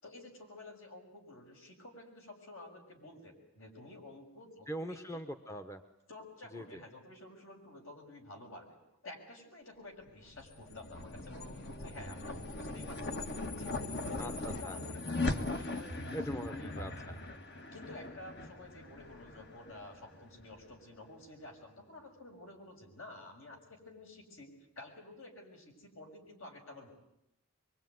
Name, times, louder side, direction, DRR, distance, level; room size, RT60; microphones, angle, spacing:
voice 1, 0.0-5.2 6.1-8.8 9.0-13.2 13.5-17.0 17.7-26.9, left 2 dB, 70° left, 2 dB, 6.5 m, -51 dB
voice 2, 4.7-5.8 6.5-6.6 14.2-14.8 16.1-17.1, right 1 dB, 15° left, 6 dB, 1.0 m, -42 dB
sound 1, 10.2-20.7, left 2 dB, 50° left, 1.6 m, -40 dB
24.5 x 23.5 x 9.5 m, 0.85 s
head